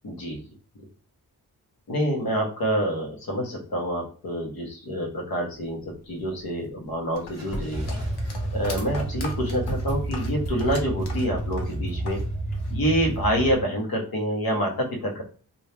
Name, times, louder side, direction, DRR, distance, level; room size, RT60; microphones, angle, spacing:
voice 1, 0.0-0.4 1.9-8.0 8.5-12.2 12.7-15.2, equal, 65° left, 0 dB, 1.2 m, -27 dB
sound 1, 5.5-12.5, equal, 40° left, 1.3 m, -41 dB
sound 2, 7.2-12.3 12.5-13.4, left 3 dB, 85° left, 0.8 m, -40 dB
sound 3, 7.4-13.6, right 2 dB, 10° right, 1.6 m, -30 dB
3.3 x 2.6 x 2.8 m, 0.39 s
wide cardioid pair, 160°, 38 cm